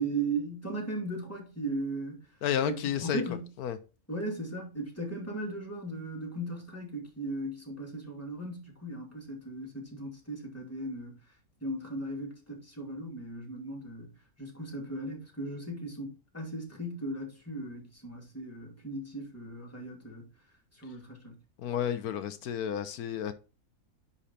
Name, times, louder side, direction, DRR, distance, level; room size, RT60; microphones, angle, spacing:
voice 1, 0.0-2.2 2.6-3.5 4.1-11.2 11.6-14.1 14.4-20.3 20.7-21.3, right 2 dB, 10° left, 2.4 m, -37 dB
voice 2, 2.4-3.2 3.6-3.8 21.6-23.3, left 9 dB, 85° left, 1.2 m, -31 dB
10.0 x 4.3 x 4.2 m
omnidirectional pair, 1.6 m